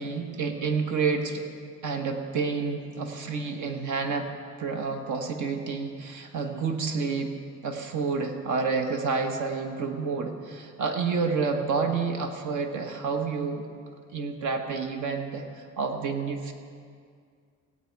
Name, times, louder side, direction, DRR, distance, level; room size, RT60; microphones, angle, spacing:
voice 1, 0.0-1.5 1.8-4.3 4.6-7.3 7.6-13.7 14.1-16.5, right 4 dB, 75° right, 5 dB, 1.3 m, -29 dB
17.0 x 8.6 x 4.6 m, 2.1 s
cardioid pair, 90°, 30 cm